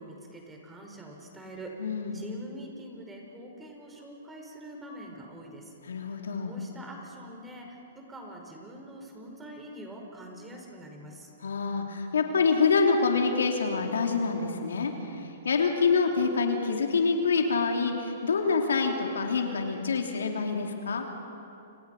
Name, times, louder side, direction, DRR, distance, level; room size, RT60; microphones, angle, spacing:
voice 1, 0.0-1.7 2.1-5.7 6.4-11.3, right 1 dB, 10° right, 1 dB, 4.9 m, -44 dB
voice 2, 1.8-2.2 5.8-6.5 11.4-14.9 15.4-21.1, left 4 dB, 90° left, 2 dB, 3.2 m, -26 dB
29.5 x 28.0 x 5.6 m, 2.8 s
hypercardioid pair, 140°, 0 cm